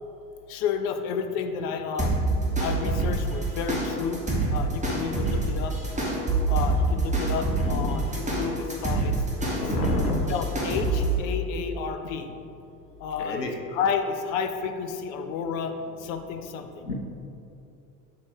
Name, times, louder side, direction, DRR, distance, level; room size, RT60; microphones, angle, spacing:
voice 1, 0.5-2.1 2.6-4.2 4.5-5.8 6.5-9.1 10.3-12.3 13.0-16.9, left 6 dB, 40° left, 6 dB, 0.5 m, -31 dB
sound 1, 2.0-11.1, right 2 dB, 15° right, 1.4 m, -26 dB
voice 2, 7.6-8.0 9.6-10.3 13.2-13.5 16.8-16.9, left 2 dB, 85° left, 2 dB, 0.8 m, -30 dB
6.0 x 4.3 x 4.5 m, 2.7 s
figure-of-eight pair, 65°, 47 cm